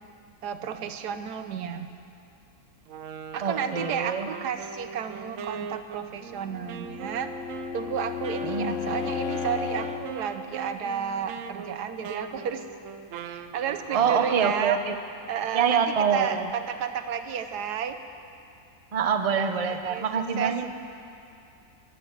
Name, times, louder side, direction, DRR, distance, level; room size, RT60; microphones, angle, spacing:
voice 1, 0.4-1.9 3.3-7.3 7.7-12.6 13.2-14.8 15.3-15.8 16.1-18.0 19.7-20.1 20.4-20.7, right 7 dB, 85° right, 9 dB, 1.4 m, -32 dB
Wind instrument woodwind instrument, 2.9-14.6, right 7 dB, 65° right, 0.9 m, -41 dB
voice 2, 3.4-4.3 8.4-8.9 13.9-15.0 15.5-16.5 18.9-20.7, right 6 dB, 40° right, 7 dB, 0.5 m, -25 dB
Bowed string instrument, 6.4-10.1, left 7 dB, 55° left, 1.2 m, -33 dB
13.5 x 11.0 x 7.9 m, 2.6 s
omnidirectional pair, 1.7 m